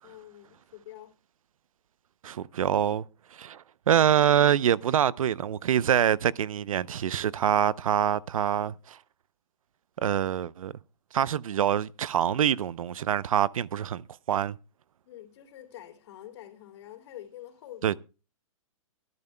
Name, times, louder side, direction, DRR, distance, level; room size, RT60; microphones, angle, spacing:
voice 1, 0.0-1.1 15.0-18.0, left 12 dB, 50° left, 3.2 m, -46 dB
voice 2, 2.2-3.0 3.3-9.0 10.0-10.7 11.1-14.0 14.3-14.6 17.8-18.0, right 9 dB, 75° right, 0.6 m, -25 dB
24.0 x 11.0 x 2.2 m
hypercardioid pair, 140°, 18 cm